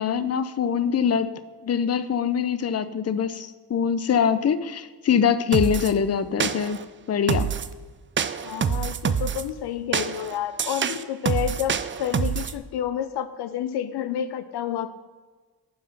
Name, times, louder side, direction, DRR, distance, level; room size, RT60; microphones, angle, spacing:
voice 1, 0.0-6.8 7.1-7.5, left 7 dB, 40° left, 13 dB, 0.6 m, -24 dB
sound 1, 5.5-5.9 6.4-6.9 7.3-7.7 8.2-9.4 9.9-12.6, right 7 dB, 30° right, 0.4 m, -26 dB
voice 2, 8.4-14.9, left 10 dB, 85° left, 12 dB, 0.5 m, -29 dB
10.5 x 3.7 x 5.8 m, 1.3 s
cardioid pair, 55°, 38 cm